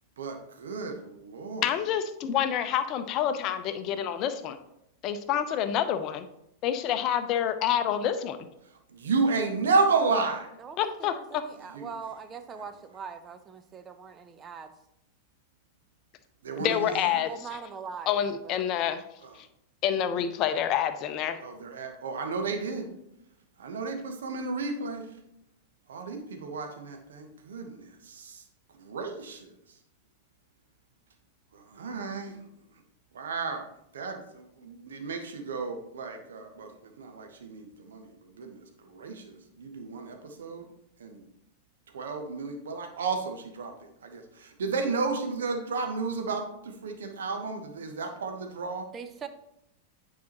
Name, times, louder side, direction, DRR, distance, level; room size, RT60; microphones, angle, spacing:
voice 1, 0.2-1.6 8.9-10.5 11.7-11.9 16.4-17.2 19.2-19.3 21.4-22.9 23.6-25.1 25.9-28.4 28.8-29.5 31.5-32.5 33.1-33.7 33.9-40.7 41.0-41.2 41.9-43.7 44.0-48.9, right 4 dB, 65° right, 5 dB, 1.0 m, -32 dB
voice 2, 1.6-4.6 5.0-6.3 6.6-8.4 10.8-11.4 16.6-17.3 18.1-19.0 19.3-19.5 19.8-21.4, left 9 dB, 40° left, 10 dB, 0.6 m, -28 dB
voice 3, 10.6-14.7 17.3-18.6 48.9-49.3, right 6 dB, 25° right, 9 dB, 0.6 m, -42 dB
9.4 x 4.8 x 3.0 m, 0.81 s
figure-of-eight pair, 95°, 0 cm